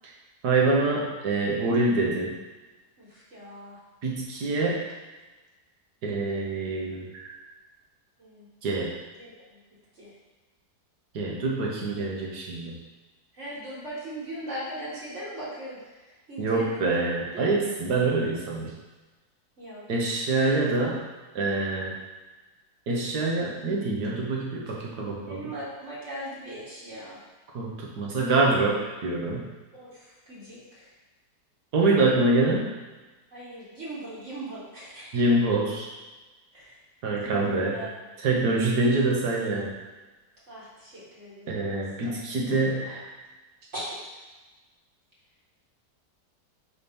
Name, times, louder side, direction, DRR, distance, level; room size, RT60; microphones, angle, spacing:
voice 1, 0.4-2.3 4.0-4.8 6.0-7.3 8.6-8.9 11.1-12.7 16.4-18.7 19.9-21.0 21.3-21.9 22.9-25.4 27.5-29.5 31.7-32.7 35.1-35.9 37.0-37.8 38.2-39.7 41.5-43.1, right 2 dB, 70° right, -2 dB, 1.7 m, -25 dB
voice 2, 3.0-3.8 8.2-8.5 9.2-9.3 10.0-10.1 13.3-15.8 16.0-17.0 17.3-17.5 19.6-19.8 20.4-20.5 25.2-27.2 29.7-30.9 33.3-35.1 36.5-36.8 37.2-37.9 40.5-42.1 43.7-43.9, right 1 dB, 45° right, -8 dB, 1.9 m, -39 dB
5.0 x 4.4 x 5.3 m, 1.2 s
omnidirectional pair, 1.8 m